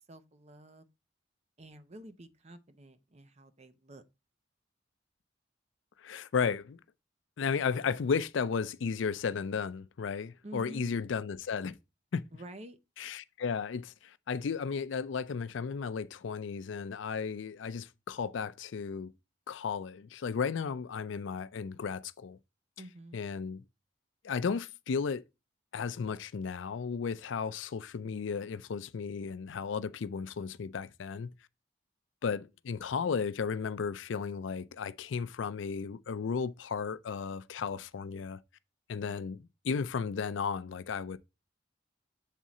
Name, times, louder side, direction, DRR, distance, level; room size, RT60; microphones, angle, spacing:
voice 1, 0.1-0.9 1.6-4.0 10.4-11.0 12.3-12.8 22.8-23.2, right 1 dB, 35° right, 0.8 m, -49 dB
voice 2, 6.0-6.8 7.4-11.8 12.1-12.2 13.0-19.1 19.5-22.4 23.1-23.6 24.2-25.2 25.7-31.3 32.2-38.4 38.9-41.2, left 6 dB, 75° left, 0.4 m, -34 dB
7.4 x 3.7 x 4.1 m
head